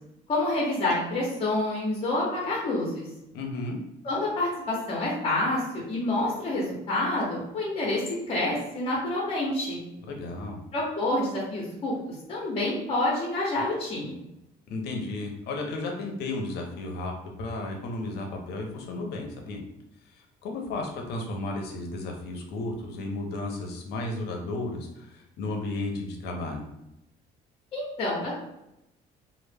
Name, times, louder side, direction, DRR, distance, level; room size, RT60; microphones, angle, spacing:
voice 1, 0.3-3.0 4.0-9.8 10.7-11.9 12.3-14.2 27.7-28.4, left 2 dB, 35° left, -4 dB, 0.7 m, -28 dB
voice 2, 3.3-3.8 10.1-10.6 14.7-17.1 17.4-19.6 20.1-26.7, left 2 dB, 75° left, 1 dB, 0.6 m, -33 dB
2.0 x 2.0 x 3.3 m, 0.87 s
cardioid pair, 110°, 17 cm